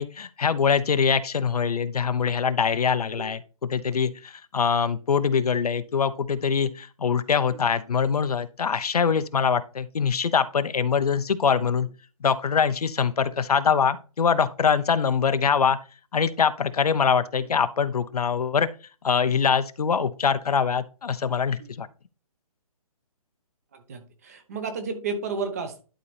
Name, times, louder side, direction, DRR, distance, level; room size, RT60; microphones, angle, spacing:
voice 1, 0.0-3.4 3.7-11.9 12.2-15.8 16.1-18.7 19.0-21.9, left 6 dB, 90° left, 0.9 m, -23 dB
voice 2, 23.7-25.8, right 4 dB, 25° right, 1.0 m, -32 dB
11.5 x 4.1 x 3.4 m
hypercardioid pair, 175°, 19 cm